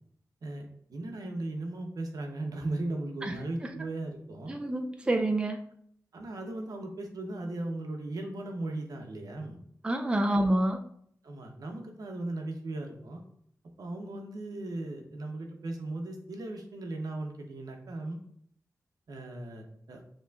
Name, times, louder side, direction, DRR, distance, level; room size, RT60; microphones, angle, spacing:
voice 1, 0.4-4.5 6.1-9.6 10.4-10.5 11.2-13.2 13.8-18.2 19.1-20.0, right 2 dB, 85° right, 3 dB, 0.8 m, -37 dB
voice 2, 3.2-3.7 4.5-5.6 9.8-10.8, right 1 dB, 15° right, 5 dB, 0.3 m, -28 dB
6.8 x 3.0 x 2.4 m, 0.66 s
wide cardioid pair, 130°, 6 cm